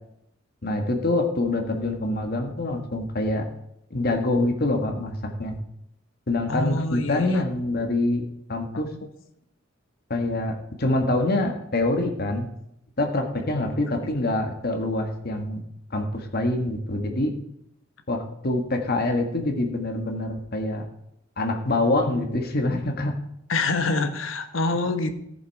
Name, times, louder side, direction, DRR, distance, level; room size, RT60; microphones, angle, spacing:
voice 1, 0.6-3.4 3.9-5.6 6.3-8.2 8.5-8.9 10.1-12.5 13.0-15.6 15.9-17.3 18.1-20.8 21.4-23.1, left 2 dB, 50° left, 4 dB, 1.5 m, -25 dB
voice 2, 6.5-7.4 13.5-13.7 23.5-25.2, left 3 dB, 90° left, 8 dB, 1.3 m, -26 dB
14.5 x 7.1 x 4.7 m, 0.78 s
head